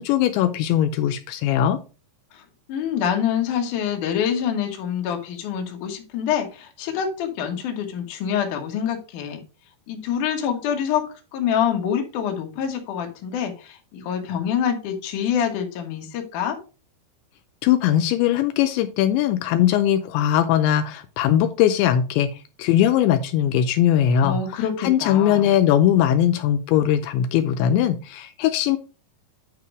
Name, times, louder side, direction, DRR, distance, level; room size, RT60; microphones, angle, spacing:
voice 1, 0.0-1.8 17.6-28.8, left 10 dB, 80° left, 8 dB, 2.9 m, -20 dB
voice 2, 2.7-9.4 9.9-11.1 11.3-16.6 24.2-25.5, left 8 dB, 60° left, 3 dB, 2.4 m, -26 dB
9.1 x 4.8 x 4.7 m, 0.32 s
omnidirectional pair, 5.3 m